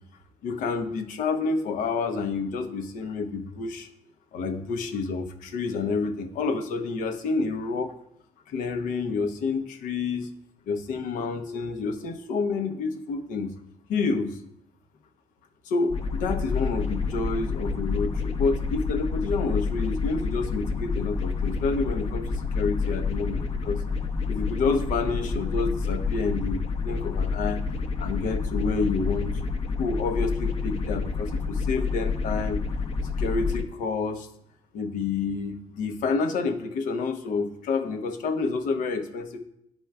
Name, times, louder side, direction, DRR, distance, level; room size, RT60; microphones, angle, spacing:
voice 1, 0.4-3.9 4.3-8.0 8.5-10.3 10.7-13.5 13.9-14.4 15.7-23.8 24.3-27.6 28.0-29.4 29.8-32.6 33.2-34.3 34.7-39.4, left 4 dB, 90° left, 7 dB, 0.7 m, -29 dB
sound 1, 15.9-33.6, left 4 dB, 50° left, 0.7 m, -28 dB
10.5 x 4.5 x 2.3 m, 0.76 s
cardioid pair, 115°, 13 cm